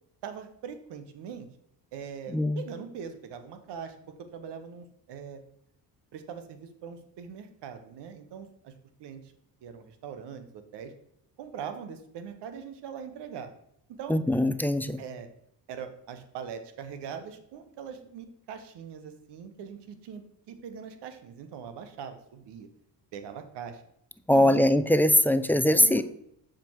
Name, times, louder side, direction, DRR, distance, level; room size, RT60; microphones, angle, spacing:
voice 1, 0.2-1.5 1.9-5.4 6.1-8.7 9.0-9.2 9.6-10.9 11.4-13.5 14.0-14.2 15.0-15.3 15.7-22.7 23.1-23.8 24.3-24.7 25.7-26.0, right 7 dB, 80° right, 9 dB, 1.1 m, -41 dB
voice 2, 2.3-2.6 14.1-15.0 24.3-26.0, left 1 dB, 5° left, 11 dB, 0.4 m, -22 dB
7.1 x 5.1 x 4.6 m, 0.73 s
cardioid pair, 85°, 41 cm